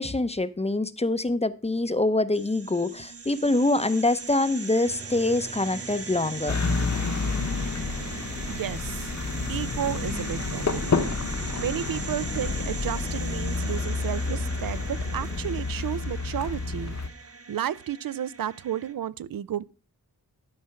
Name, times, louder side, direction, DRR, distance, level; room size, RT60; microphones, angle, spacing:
voice 1, 0.0-6.6, left 2 dB, 20° left, 0.6 m, -25 dB
sound 1, 2.3-18.9, right 4 dB, 40° right, 1.2 m, -40 dB
sound 2, 4.9-15.5, right 4 dB, 20° right, 0.5 m, -45 dB
sound 3, 6.5-17.1, left 4 dB, 50° left, 1.1 m, -29 dB
voice 2, 8.5-9.1 9.5-10.9 11.6-19.6, right 10 dB, 70° right, 0.5 m, -32 dB
12.0 x 4.3 x 5.7 m
wide cardioid pair, 70°, 36 cm